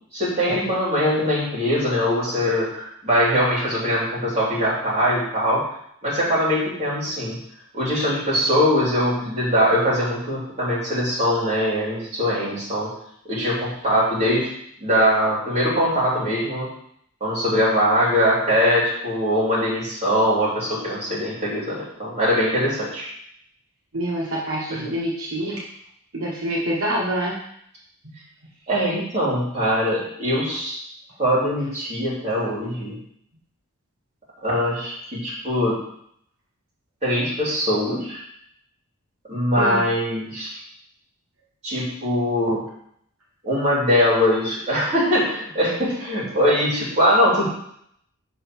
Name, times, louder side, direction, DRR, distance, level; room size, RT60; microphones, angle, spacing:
voice 1, 0.1-5.6 6.0-7.3 7.7-12.9 13.3-14.5 14.8-16.7 17.2-23.1 24.7-24.8 28.7-30.8 31.2-33.0 34.4-35.8 37.0-38.2 39.3-40.6 41.6-42.6 43.4-47.5, equal, 30° right, -7 dB, 3.1 m, -22 dB
voice 2, 23.9-25.6 26.1-27.4 39.5-39.8, right 1 dB, 75° right, -4 dB, 1.3 m, -26 dB
5.6 x 3.9 x 6.1 m, 0.70 s
head